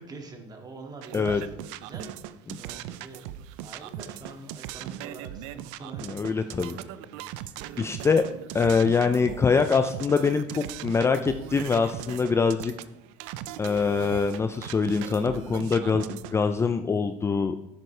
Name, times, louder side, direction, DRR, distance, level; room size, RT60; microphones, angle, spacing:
voice 1, 0.0-3.3 3.6-7.3, right 3 dB, 25° right, 3 dB, 2.0 m, -45 dB
sound 1, 1.0-16.4, right 12 dB, 80° right, 0.6 m, -39 dB
voice 2, 6.0-6.8 7.8-8.3 8.5-12.7 13.6-17.6, left 5 dB, 15° left, 8 dB, 0.4 m, -24 dB
11.0 x 9.2 x 3.3 m, 0.94 s
supercardioid pair, 115°, 15 cm